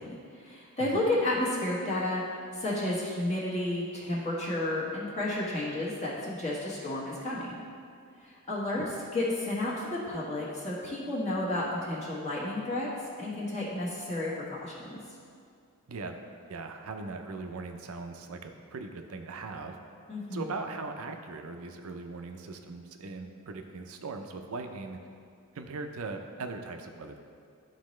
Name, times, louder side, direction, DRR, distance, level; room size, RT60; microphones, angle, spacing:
voice 1, 0.0-2.2 2.5-7.6 8.2-8.8 9.1-12.9 13.2-15.0 20.1-20.5, left 1 dB, 30° left, -7 dB, 1.3 m, -32 dB
voice 2, 16.5-19.8 20.3-25.0 25.5-27.2, right 3 dB, 65° right, 5 dB, 0.5 m, -39 dB
11.5 x 4.0 x 3.1 m, 2.3 s
head